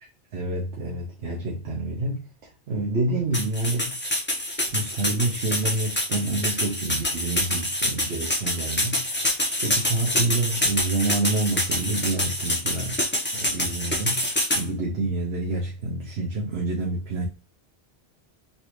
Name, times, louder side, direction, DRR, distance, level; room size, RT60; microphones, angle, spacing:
voice 1, 0.3-4.0 4.7-13.0 13.3-17.3, right 2 dB, 75° right, 0.9 m, -28 dB
sound 1, 3.3-14.6, left 1 dB, 15° left, 0.6 m, -26 dB
3.1 x 2.7 x 3.0 m
omnidirectional pair, 1.1 m